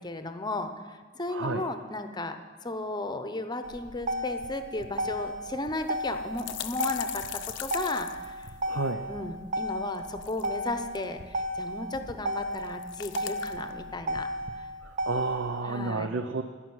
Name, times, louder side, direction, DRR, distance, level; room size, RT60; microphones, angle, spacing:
voice 1, 0.0-2.4 2.6-8.5 9.1-14.3 14.6-14.7 15.6-16.1, left 2 dB, 20° left, 8 dB, 0.8 m, -35 dB
voice 2, 1.3-1.6 8.6-9.0 14.8-16.4, right 3 dB, 65° right, 6 dB, 0.6 m, -31 dB
Motor vehicle (road), 3.6-15.6, equal, 40° right, 0.9 m, -34 dB
sound 1, 4.4-4.5 4.8-4.9 5.8-8.9 9.9-11.0 12.3-13.7, left 11 dB, 65° left, 0.6 m, -39 dB
14.0 x 6.0 x 9.4 m, 1.5 s
head